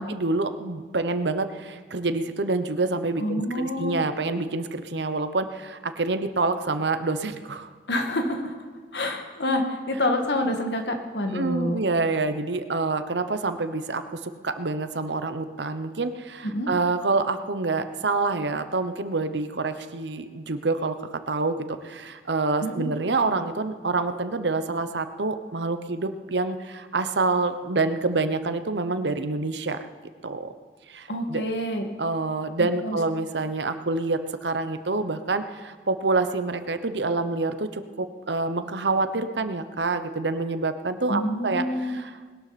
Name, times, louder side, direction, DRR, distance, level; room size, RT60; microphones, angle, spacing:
voice 1, 0.0-7.7 11.3-21.0 21.3-29.8 30.2-30.5 30.9-31.4 32.0-42.2, right 3 dB, 80° right, 9 dB, 1.0 m, -27 dB
voice 2, 3.2-4.0 7.9-8.5 8.9-11.8 16.4-16.7 22.6-22.9 31.1-31.9 32.6-33.0 41.1-42.0, left 1 dB, 80° left, 4 dB, 1.9 m, -27 dB
20.5 x 12.0 x 4.3 m, 1.5 s
head